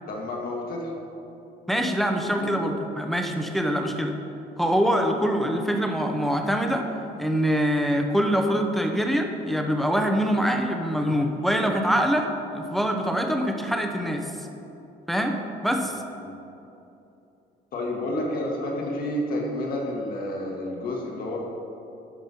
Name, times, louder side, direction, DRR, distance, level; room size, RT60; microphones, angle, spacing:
voice 1, 0.0-1.0 2.4-2.5 16.2-16.3 17.7-21.5, left 1 dB, 60° left, -1 dB, 1.8 m, -30 dB
voice 2, 1.7-4.1 4.6-6.8 7.2-14.3 15.1-15.4 15.6-16.0, equal, ahead, 3 dB, 0.7 m, -24 dB
11.5 x 4.0 x 5.4 m, 2.8 s
cardioid pair, 110°, 17 cm